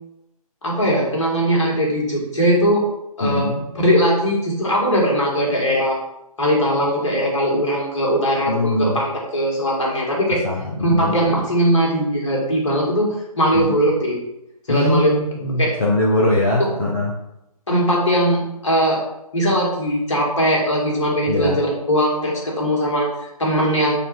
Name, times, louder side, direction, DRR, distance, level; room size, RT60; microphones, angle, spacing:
voice 1, 0.6-2.8 3.2-3.5 3.7-6.0 6.4-10.4 10.8-14.2 14.7-15.1 15.6-15.7 17.7-19.0 19.3-23.9, equal, 50° left, -2 dB, 1.5 m, -20 dB
voice 2, 3.2-3.6 8.5-9.0 10.4-11.1 13.5-13.7 14.7-17.1 21.3-21.6, left 1 dB, 30° left, -5 dB, 0.6 m, -21 dB
4.0 x 2.4 x 4.4 m, 0.88 s
figure-of-eight pair, 140°, 19 cm